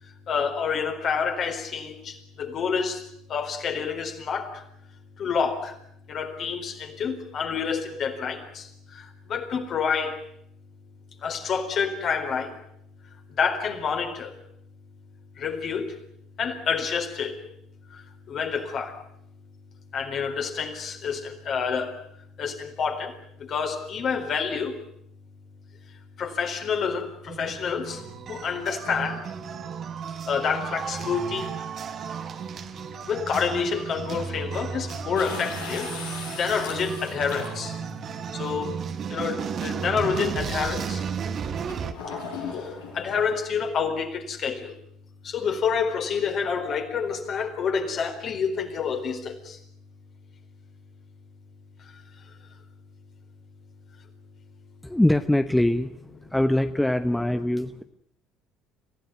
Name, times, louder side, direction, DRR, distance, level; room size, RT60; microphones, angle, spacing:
voice 1, 0.0-4.6 5.2-5.7 6.1-10.2 11.2-12.6 13.3-14.3 15.4-16.0 16.4-17.4 17.9-19.0 19.9-22.0 22.4-24.8 25.9-29.2 30.3-31.6 33.1-35.9 36.3-37.8 38.3-38.8 39.1-41.1 42.1-44.7 45.2-49.6 51.9-52.3, left 6 dB, 45° left, 5 dB, 4.4 m, -28 dB
sound 1, 27.2-41.9, right 7 dB, 45° right, 2.0 m, -34 dB
sound 2, 35.1-37.9 38.8-38.9 41.7-43.3, left 5 dB, 75° left, 6.7 m, -37 dB
voice 2, 54.8-57.8, left 1 dB, 5° left, 10 dB, 1.1 m, -23 dB
27.5 x 16.0 x 9.4 m, 0.73 s
figure-of-eight pair, 60°, 0 cm